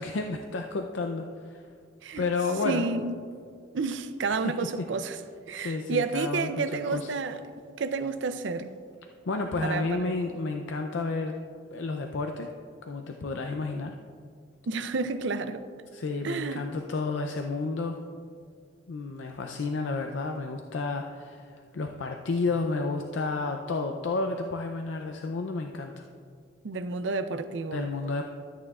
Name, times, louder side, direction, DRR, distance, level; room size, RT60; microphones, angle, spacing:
voice 1, 0.0-1.6 2.2-2.9 4.4-4.5 5.5-7.1 9.3-11.3 11.7-12.5 12.8-13.9 15.9-18.0 18.9-26.0 27.7-28.2, left 3 dB, 80° left, 0.5 m, -31 dB
voice 2, 2.6-3.2 3.7-5.2 5.5-8.7 9.6-10.1 14.7-15.6 16.2-16.6 26.6-27.9, right 4 dB, 80° right, 0.5 m, -30 dB
13.5 x 8.7 x 2.4 m
head